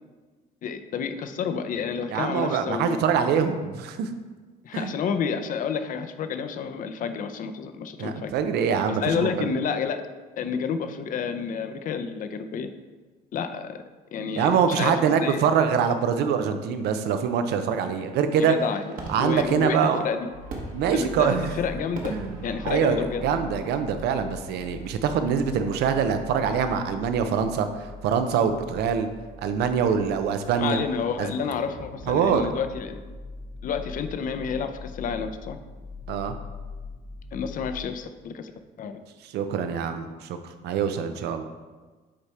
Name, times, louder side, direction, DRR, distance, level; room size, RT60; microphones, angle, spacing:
voice 1, 0.6-3.3 4.6-8.3 8.9-10.1 10.4-12.7 13.3-13.8 14.1-15.4 18.4-20.3 20.9-22.2 22.4-23.4 30.6-33.0 33.6-35.6 37.3-38.5 38.8-39.0, left 6 dB, 55° left, 9 dB, 0.6 m, -30 dB
voice 2, 2.1-4.1 4.7-4.9 8.0-9.5 14.3-18.6 19.1-20.0 20.7-21.6 22.1-29.1 29.4-30.8 31.2-31.3 32.1-32.4 36.1-36.4 39.2-41.4, right 7 dB, 75° right, 8 dB, 0.6 m, -24 dB
Fireworks, 17.5-25.8, right 2 dB, 55° right, 1.3 m, -43 dB
sound 1, 20.3-37.8, left 3 dB, 90° left, 1.3 m, -42 dB
8.7 x 3.4 x 4.3 m, 1.3 s
cardioid pair, 110°, 17 cm